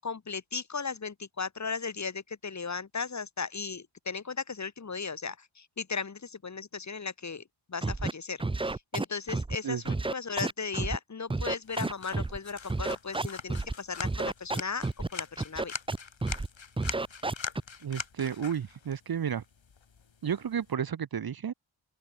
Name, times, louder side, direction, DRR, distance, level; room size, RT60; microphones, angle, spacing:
voice 1, 0.0-7.4 7.7-14.9 15.1-15.7, left 5 dB, 35° left, 1.1 m, -36 dB
Scratching (performance technique), 7.8-8.1 8.4-9.5 9.8-11.0 11.3-12.4 12.7-13.7 14.0-15.1 15.4-16.5 16.8-17.6, right 3 dB, 10° right, 0.5 m, -30 dB
voice 2, 9.6-10.0 17.8-19.4 20.2-21.5, right 8 dB, 45° right, 0.8 m, -32 dB
sound 1, 11.6-20.7, left 6 dB, 60° left, 7.0 m, -43 dB
open air
cardioid pair, 70°, 50 cm